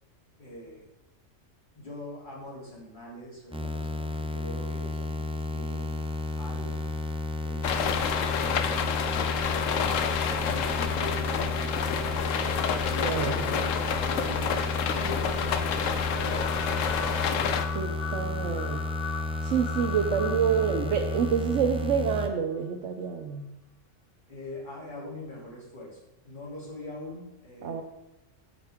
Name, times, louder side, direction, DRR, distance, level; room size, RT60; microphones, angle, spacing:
voice 1, 0.4-0.9 1.7-6.0 6.4-6.9 10.4-14.6 14.9-16.9 24.3-26.0 26.2-27.8, left 1 dB, 40° left, -4 dB, 2.9 m, -43 dB
sound 1, 3.5-22.3, left 2 dB, 10° right, 0.4 m, -32 dB
sound 2, 7.6-17.7, left 7 dB, 90° left, 1.1 m, -29 dB
voice 2, 13.0-13.4 17.7-18.8 19.4-23.5 27.6-27.8, right 7 dB, 70° right, 4 dB, 1.0 m, -27 dB
sound 3, 16.1-22.2, left 6 dB, 70° left, 0.9 m, -39 dB
8.7 x 7.4 x 3.5 m, 0.92 s
omnidirectional pair, 1.3 m